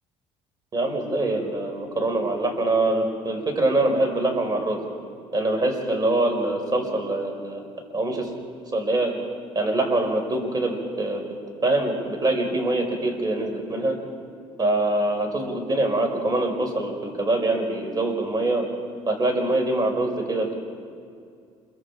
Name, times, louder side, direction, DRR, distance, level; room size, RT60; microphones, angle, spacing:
voice 1, 0.7-4.8 5.3-7.6 7.9-8.3 8.7-9.1 9.6-11.2 11.6-14.0 14.6-18.6 19.1-20.5, right 2 dB, 30° right, 4 dB, 5.2 m, -24 dB
28.0 x 23.5 x 5.0 m, 2.3 s
supercardioid pair, 90°, 13 cm